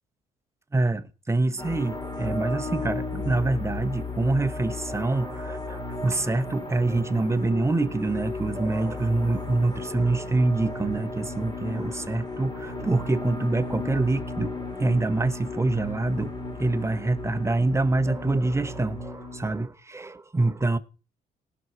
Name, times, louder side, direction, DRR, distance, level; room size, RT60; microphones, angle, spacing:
voice 1, 0.7-14.5 14.8-16.3 16.6-20.8, right 2 dB, 15° right, 1.0 m, -26 dB
sound 1, 1.6-19.6, left 2 dB, 25° left, 3.1 m, -35 dB
18.0 x 6.2 x 4.6 m
cardioid pair, 85°, 16 cm